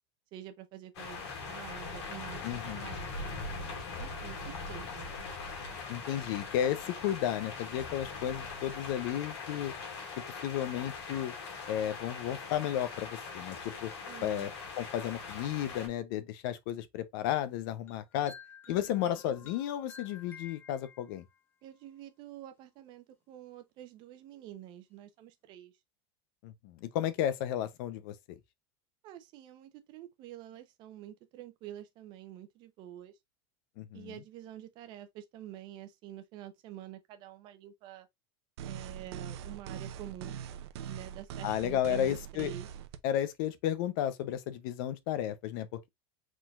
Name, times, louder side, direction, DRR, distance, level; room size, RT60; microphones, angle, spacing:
voice 1, 0.3-3.5 4.0-5.1 14.1-14.5 18.7-19.2 21.6-25.7 29.0-33.1 33.9-38.1 38.7-40.4 40.9-42.7, right 12 dB, 35° right, 0.7 m, -48 dB
sound 1, 0.9-15.9, left 4 dB, 80° left, 2.0 m, -41 dB
voice 2, 2.4-2.9 5.9-9.7 10.4-11.3 11.7-13.9 14.2-18.3 18.7-21.2 26.4-28.4 33.8-34.2 41.4-42.5 43.0-45.9, left 11 dB, 50° left, 0.7 m, -33 dB
sound 2, 17.9-21.4, left 6 dB, 15° left, 0.9 m, -52 dB
sound 3, 38.6-43.0, right 8 dB, 80° right, 0.7 m, -42 dB
4.8 x 3.9 x 2.4 m
supercardioid pair, 175°, 14 cm